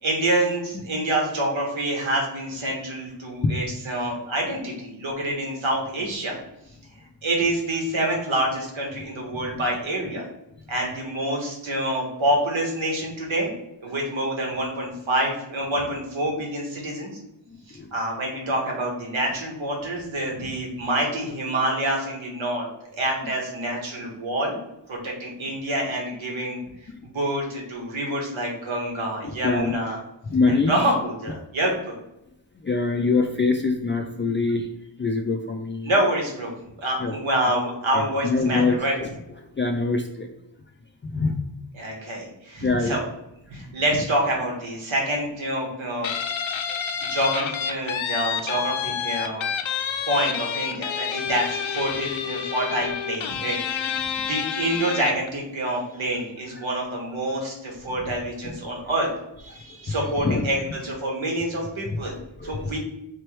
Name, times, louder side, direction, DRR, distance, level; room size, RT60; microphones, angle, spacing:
voice 1, 0.0-6.3 7.2-10.3 10.7-13.5 13.8-17.1 17.7-24.6 24.9-26.6 27.0-30.0 30.5-31.9 35.8-36.5 36.8-39.0 41.7-43.0 43.5-46.1 47.1-49.4 50.1-53.9 54.3-59.1 59.4-62.1 62.4-62.8, right 1 dB, 80° right, -1 dB, 1.4 m, -27 dB
voice 2, 17.5-17.9 29.4-29.7 30.3-30.8 32.6-34.7 35.0-35.9 37.0-37.1 37.9-39.1 39.6-40.3 41.1-41.4 42.6-43.0 46.4-46.8 54.2-54.3 56.6-56.7 58.4-58.5 59.9-60.0 60.2-60.5 62.0-62.7, left 3 dB, 25° left, 2 dB, 0.3 m, -24 dB
Guitar, 46.0-55.3, left 7 dB, 80° left, 0.6 m, -29 dB
4.4 x 3.0 x 3.2 m, 0.86 s
wide cardioid pair, 90°, 47 cm